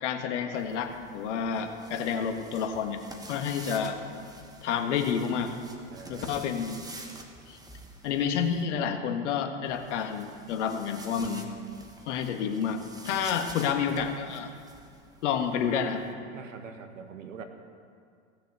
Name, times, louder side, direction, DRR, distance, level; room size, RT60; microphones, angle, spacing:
voice 1, 0.0-3.0 3.3-4.0 4.6-5.5 6.1-6.8 7.5-7.6 8.0-11.5 12.1-12.8 13.0-14.5 15.2-16.0, left 7 dB, 65° left, 5 dB, 1.6 m, -29 dB
sound 1, 0.5-8.6 9.6-16.1, right 2 dB, 10° right, 1.5 m, -48 dB
voice 2, 5.9-6.5 13.1-13.5 16.3-17.4, right 6 dB, 80° right, 6 dB, 1.5 m, -44 dB
17.0 x 6.6 x 8.0 m, 2.2 s
hypercardioid pair, 95°, 38 cm